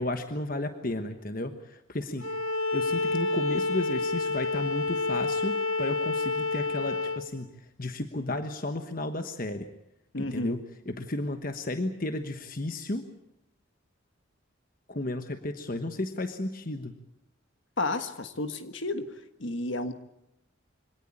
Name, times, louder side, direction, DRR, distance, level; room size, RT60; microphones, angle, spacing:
voice 1, 0.0-2.3 2.7-7.5 7.8-9.7 10.2-10.6 10.9-13.0 14.9-16.9, left 2 dB, 45° left, 8 dB, 1.2 m, -33 dB
Bowed string instrument, 2.2-7.2, left 3 dB, 90° left, 2.3 m, -29 dB
voice 2, 10.1-10.6 17.8-19.9, left 2 dB, 65° left, 9 dB, 1.6 m, -32 dB
24.5 x 18.0 x 8.6 m, 0.84 s
head